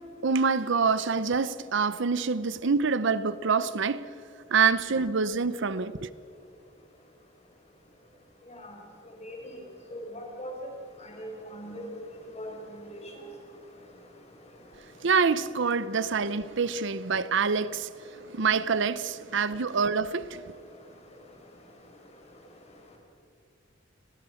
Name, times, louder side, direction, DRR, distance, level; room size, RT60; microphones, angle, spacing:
voice 1, 0.2-4.1 4.5-6.1 15.0-17.9 18.3-20.4, right 5 dB, 65° right, 0.7 m, -26 dB
voice 2, 9.9-10.5 11.0-11.8 12.4-12.5 12.9-13.0, equal, 35° left, 5.4 m, -40 dB
29.5 x 21.5 x 6.4 m
head